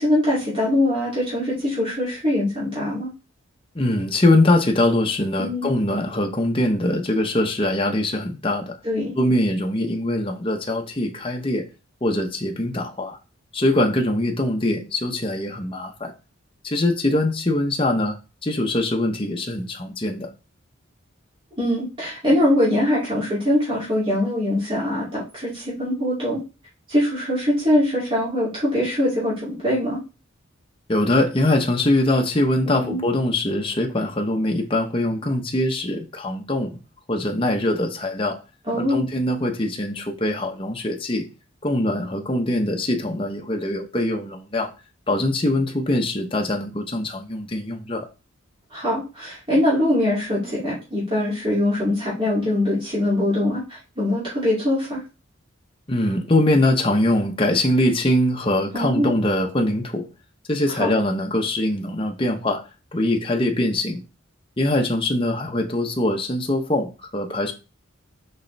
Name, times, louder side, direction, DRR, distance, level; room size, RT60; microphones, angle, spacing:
voice 1, 0.0-3.1 5.4-5.7 8.8-9.2 21.6-26.4 26.9-30.0 32.6-33.0 38.7-39.1 48.7-55.0 58.7-59.1 60.8-60.9, left 1 dB, 25° right, 2.7 m, -22 dB
voice 2, 3.7-8.8 9.1-11.7 12.0-13.2 13.5-16.1 16.6-18.2 18.4-20.3 30.9-36.8 37.1-38.4 38.8-41.3 41.6-44.7 45.1-48.1 55.9-60.1 60.5-62.6 62.9-64.0 64.6-67.5, left 1 dB, 25° left, 0.8 m, -22 dB
6.6 x 5.0 x 3.3 m
head